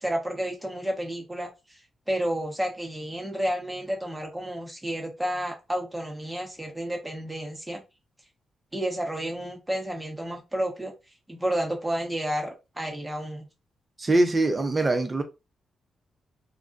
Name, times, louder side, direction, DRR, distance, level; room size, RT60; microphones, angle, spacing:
voice 1, 0.0-1.8 2.1-7.8 8.7-10.9 11.3-13.5, right 1 dB, 10° right, 0.9 m, -31 dB
voice 2, 14.0-15.2, right 2 dB, 25° right, 0.6 m, -23 dB
2.3 x 2.1 x 2.5 m
cardioid pair, 85°, 0 cm